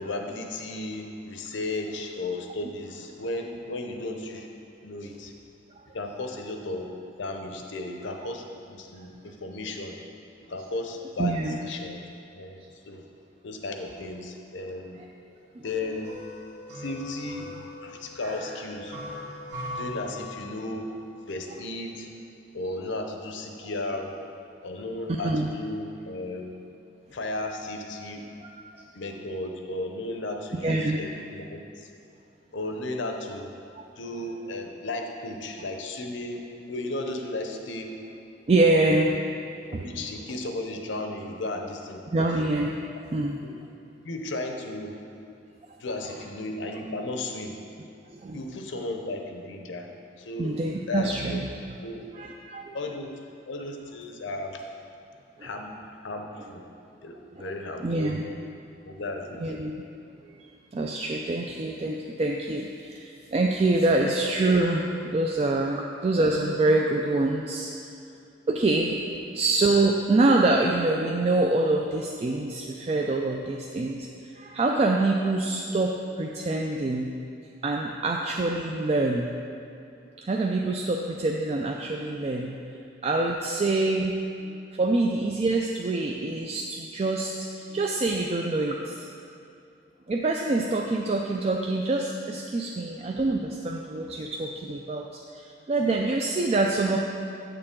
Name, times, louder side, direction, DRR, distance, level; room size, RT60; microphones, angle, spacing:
voice 1, 0.0-4.5 4.8-5.3 5.9-6.9 7.2-10.0 10.4-12.1 12.3-13.0 13.4-15.0 15.6-16.2 16.8-19.0 19.8-20.9 21.3-22.1 22.5-24.1 24.6-26.5 27.1-28.3 28.9-31.9 32.5-33.5 34.0-37.9 38.6-38.9 39.8-42.1 43.2-43.5 44.0-45.0 45.8-47.5 48.3-49.9 50.2-50.6 50.9-52.0 52.7-53.1 53.5-54.6 55.4-56.6 57.0-58.1 58.9-59.6, left 2 dB, 80° left, 4 dB, 0.7 m, -35 dB
voice 2, 11.2-11.6 15.6-15.7 25.2-25.5 28.4-28.5 30.6-31.0 38.5-39.2 39.7-40.0 42.1-42.8 43.1-43.4 48.1-48.4 50.4-51.4 52.2-52.8 55.4-55.5 57.4-57.5 57.8-58.2 59.4-59.7 60.2-67.7 68.5-74.1 74.3-77.1 77.6-79.3 80.2-82.6 83.0-89.1 90.1-97.0, right 2 dB, 35° right, 0 dB, 0.3 m, -25 dB
sound 1, 15.6-20.8, left 1 dB, 60° right, 1.3 m, -40 dB
8.6 x 6.7 x 3.7 m, 2.5 s
head